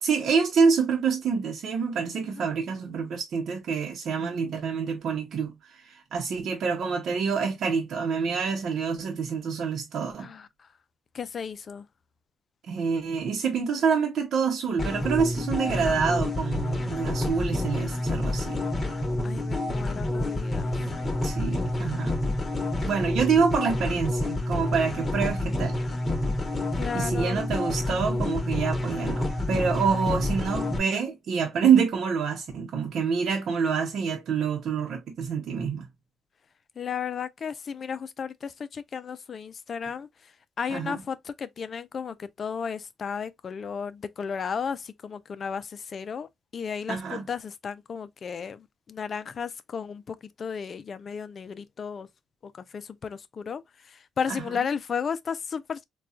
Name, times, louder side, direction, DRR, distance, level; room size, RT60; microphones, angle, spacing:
voice 1, 0.0-10.3 12.7-18.6 20.7-20.9 21.2-22.1 22.8-25.8 26.9-35.9 40.7-41.0 46.9-47.3 54.4-54.6, right 6 dB, 65° right, 0.8 m, -27 dB
voice 2, 11.1-11.9 15.6-16.0 19.2-20.7 26.8-27.5 36.8-40.1 40.6-52.1 52.4-55.8, left 6 dB, 50° left, 0.4 m, -34 dB
sound 1, 14.8-30.8, left 1 dB, 25° left, 1.1 m, -28 dB
4.1 x 2.3 x 2.4 m
cardioid pair, 90°, 0 cm